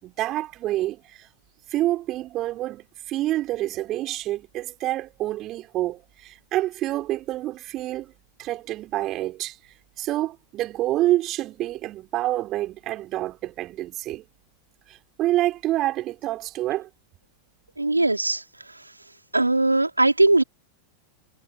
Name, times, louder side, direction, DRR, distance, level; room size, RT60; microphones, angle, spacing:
voice 1, 0.0-1.3 1.7-8.1 8.4-9.6 10.0-14.2 14.9-16.9, right 15 dB, 35° right, 6.1 m, -27 dB
voice 2, 17.8-18.4 19.3-20.4, right 2 dB, 85° right, 3.9 m, -19 dB
figure-of-eight pair, 90°, 0 cm